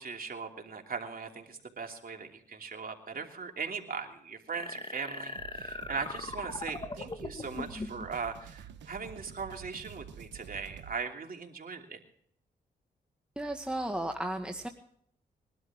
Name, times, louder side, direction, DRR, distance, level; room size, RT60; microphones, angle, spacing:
voice 1, 0.0-12.0, right 5 dB, 55° right, 3 dB, 3.0 m, -39 dB
sound 1, 4.5-8.1, left 2 dB, 30° left, 1.9 m, -40 dB
sound 2, 5.3-11.0, right 8 dB, 90° right, 1.2 m, -49 dB
voice 2, 13.4-14.7, right 1 dB, 5° right, 3 dB, 1.8 m, -34 dB
21.5 x 12.5 x 3.7 m, 0.65 s
supercardioid pair, 50°, 18 cm